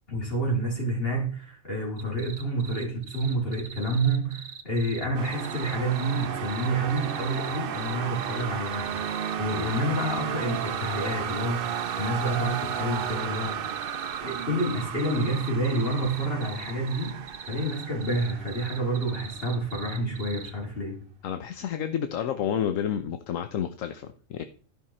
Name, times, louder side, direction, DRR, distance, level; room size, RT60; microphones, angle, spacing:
voice 1, 0.1-9.1 9.4-13.6 14.2-21.0, right 1 dB, 45° left, 3.9 m, -29 dB
sound 1, 2.0-20.5, right 6 dB, 85° right, 1.5 m, -42 dB
sound 2, 5.1-20.0, right 8 dB, 55° right, 0.7 m, -34 dB
voice 2, 21.2-24.4, left 9 dB, 75° left, 1.1 m, -30 dB
13.5 x 5.8 x 4.3 m
omnidirectional pair, 1.4 m